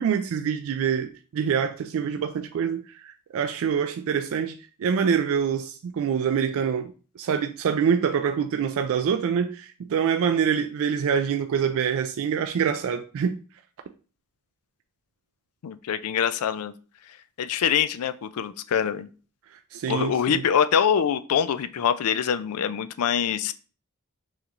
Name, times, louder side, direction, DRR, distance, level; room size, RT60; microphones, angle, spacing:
voice 1, 0.0-13.4 19.5-20.4, right 7 dB, 65° right, 0.3 m, -25 dB
voice 2, 15.6-16.7 17.4-19.1 19.9-23.5, left 8 dB, 75° left, 0.4 m, -24 dB
6.2 x 3.0 x 2.5 m
head